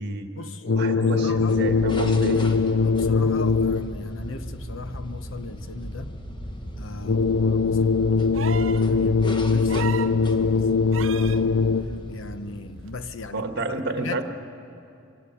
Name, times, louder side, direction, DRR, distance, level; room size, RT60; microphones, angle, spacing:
voice 1, 0.0-0.3 0.7-2.4 7.1-7.3 8.9-9.2 13.3-14.2, right 2 dB, 55° right, 6 dB, 1.6 m, -30 dB
sound 1, 0.6-4.1 7.0-12.1, left 4 dB, 55° left, 0.6 m, -22 dB
voice 2, 0.9-1.6 2.8-6.1 6.8-8.1 8.9-11.6 12.1-13.5 14.0-14.2, left 3 dB, 75° left, 10 dB, 1.0 m, -38 dB
sound 2, 1.2-13.4, equal, 25° left, 1.3 m, -37 dB
sound 3, 8.3-8.9 9.7-10.2 10.9-11.4 12.9-13.0, right 7 dB, 75° right, 0.6 m, -34 dB
24.0 x 17.0 x 8.5 m, 2.5 s
head